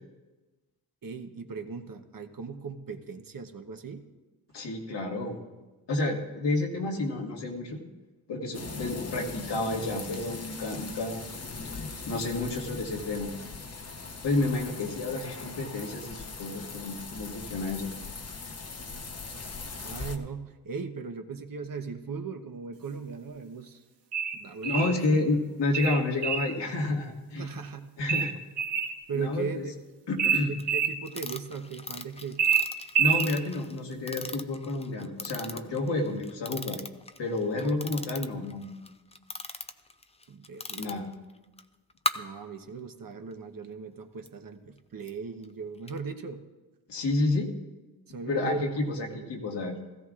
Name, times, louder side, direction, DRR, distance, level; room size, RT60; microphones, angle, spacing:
voice 1, 1.0-4.1 19.8-23.8 24.3-25.3 27.4-27.9 29.1-29.8 30.5-32.4 37.5-37.7 40.3-40.9 42.1-46.4 48.1-49.4, right 5 dB, 55° right, 7 dB, 1.0 m, -38 dB
voice 2, 4.5-5.4 5.9-7.8 8.3-11.3 11.7-11.8 12.1-13.3 14.2-17.9 24.6-27.5 28.0-28.3 29.1-29.7 30.1-30.5 33.0-36.8 37.2-38.7 40.7-41.1 46.9-47.5 48.3-49.7, left 2 dB, 80° left, 0 dB, 1.8 m, -30 dB
sound 1, 8.5-20.2, left 4 dB, 35° left, 0.9 m, -40 dB
sound 2, 24.1-25.0 25.7-26.5 28.1-29.0 30.2-30.9 32.4-33.3, right 7 dB, 85° right, 1.0 m, -26 dB
sound 3, 30.6-30.7 31.1-41.1 41.6-41.7 41.9-42.1 44.3-44.4 45.1-45.2 45.4-45.5 45.9-46.0, left 3 dB, 15° left, 0.5 m, -38 dB
17.0 x 14.5 x 2.5 m, 1.2 s
cardioid pair, 75°, 41 cm